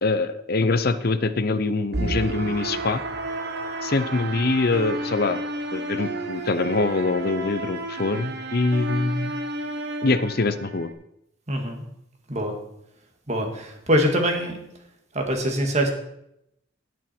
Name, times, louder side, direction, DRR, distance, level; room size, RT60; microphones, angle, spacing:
voice 1, 0.0-3.0 3.8-5.4 5.7-9.4 10.0-10.9, left 3 dB, 50° left, 12 dB, 0.7 m, -24 dB
sound 1, 1.9-10.9, right 2 dB, 60° right, 1.2 m, -31 dB
voice 2, 11.5-11.8 12.3-12.6 13.3-14.6 15.1-15.9, equal, 35° right, 3 dB, 2.0 m, -23 dB
18.0 x 6.4 x 4.5 m, 0.81 s
head